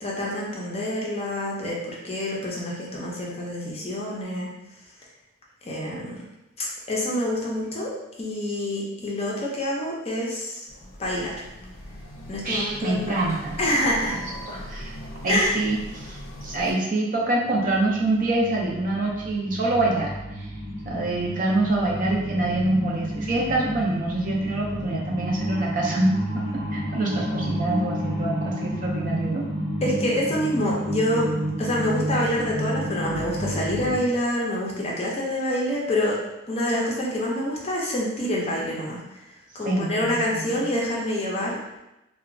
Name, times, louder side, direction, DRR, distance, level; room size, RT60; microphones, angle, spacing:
voice 1, 0.0-4.5 5.6-6.2 6.6-7.9 8.2-10.6 11.0-11.3 12.3-13.3 13.6-14.2 15.3-15.5 29.8-31.3 31.6-36.2 36.5-39.0 39.5-41.6, left 1 dB, 30° left, -3 dB, 0.4 m, -26 dB
sound 1, 10.7-16.7, equal, 85° left, 0.5 m, -40 dB
voice 2, 12.4-13.6 14.0-14.2 14.5-14.9 15.2-20.5 20.8-29.4 39.6-40.6, right 2 dB, 40° right, -2 dB, 0.4 m, -26 dB
sound 2, 17.3-34.0, equal, 70° right, 0.9 m, -31 dB
2.8 x 2.1 x 2.5 m, 0.93 s
head